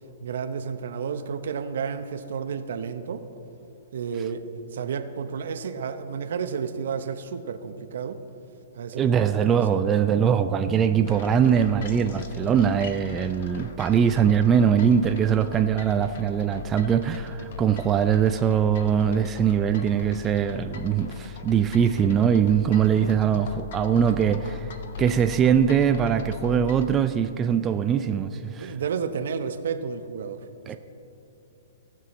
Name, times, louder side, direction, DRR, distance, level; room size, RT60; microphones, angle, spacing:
voice 1, 0.2-3.2 3.9-8.2 8.7-9.8 28.6-30.8, right 6 dB, 70° right, 9 dB, 0.8 m, -31 dB
voice 2, 8.9-28.7 30.7-30.8, right 8 dB, 20° right, 8 dB, 0.3 m, -22 dB
sound 1, 11.0-26.9, left 8 dB, 60° left, 0.9 m, -40 dB
17.5 x 6.2 x 4.2 m, 2.8 s
hypercardioid pair, 150°, 0 cm